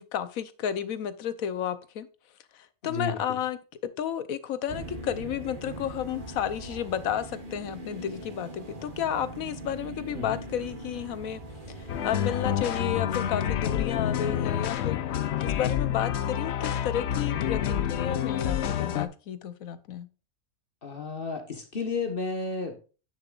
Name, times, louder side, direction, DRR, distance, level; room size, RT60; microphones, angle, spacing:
voice 1, 0.0-2.1 2.5-3.6 4.0-11.4 11.8-15.0 15.4-20.1, left 9 dB, 85° left, 14 dB, 1.2 m, -32 dB
voice 2, 2.8-3.2 10.1-10.4 20.8-22.8, left 4 dB, 45° left, 6 dB, 1.4 m, -32 dB
sound 1, 4.7-13.0, right 1 dB, 40° right, 1.7 m, -41 dB
sound 2, 11.9-19.1, left 10 dB, 60° left, 0.9 m, -28 dB
9.9 x 6.8 x 2.4 m, 0.35 s
omnidirectional pair, 1.4 m